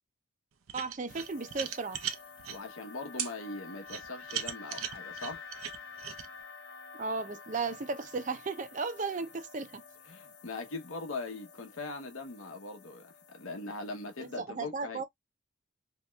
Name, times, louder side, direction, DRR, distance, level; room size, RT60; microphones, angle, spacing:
voice 1, 0.7-2.0 7.0-9.8 14.2-15.0, right 4 dB, 35° right, 0.5 m, -35 dB
sound 1, 0.7-2.6 3.2-3.3 3.9-6.3, right 9 dB, 90° right, 0.6 m, -37 dB
sound 2, 1.1-14.4, left 5 dB, 55° left, 0.7 m, -50 dB
voice 2, 2.5-5.4 10.1-15.0, left 3 dB, 80° left, 0.9 m, -41 dB
3.1 x 2.9 x 2.2 m
head